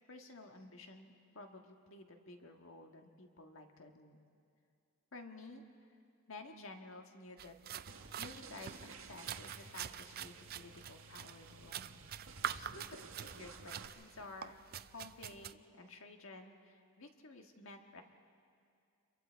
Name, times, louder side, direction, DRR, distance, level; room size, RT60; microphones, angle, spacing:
voice 1, 0.1-4.2 5.1-5.6 5.9-6.0 6.3-7.5 8.2-12.0 12.5-14.6 14.9-18.0, left 2 dB, 65° left, 4 dB, 1.6 m, -53 dB
sound 1, 7.4-15.5, right 10 dB, 45° right, 0.4 m, -46 dB
sound 2, 7.9-13.9, right 4 dB, 70° right, 1.6 m, -54 dB
28.5 x 23.0 x 4.6 m, 2.4 s
head